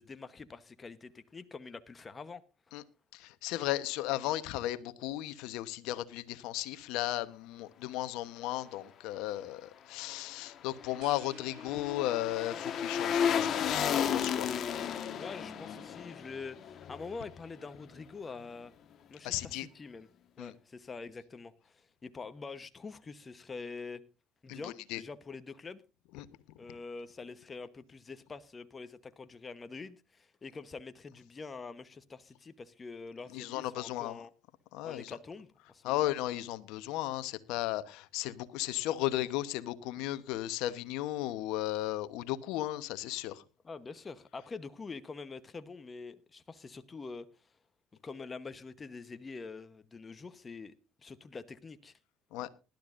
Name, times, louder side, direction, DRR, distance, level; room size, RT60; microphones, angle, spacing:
voice 1, 0.0-2.4 15.1-18.7 19.1-20.1 20.4-24.0 24.4-25.8 26.6-34.3 34.8-36.0 43.6-47.3 48.0-50.7 51.0-51.9 52.4-52.5, left 4 dB, 25° left, 1.0 m, -45 dB
voice 2, 3.1-14.5 19.2-19.7 20.4-20.5 24.5-25.0 26.1-26.3 33.3-34.2 34.7-35.2 35.8-43.4 52.3-52.5, left 15 dB, 75° left, 1.0 m, -35 dB
sound 1, 10.4-17.6 17.9-18.0, left 8 dB, 50° left, 1.4 m, -33 dB
sound 2, 11.0-12.7, right 10 dB, 70° right, 2.8 m, -57 dB
19.5 x 12.0 x 2.6 m
supercardioid pair, 85°, 0 cm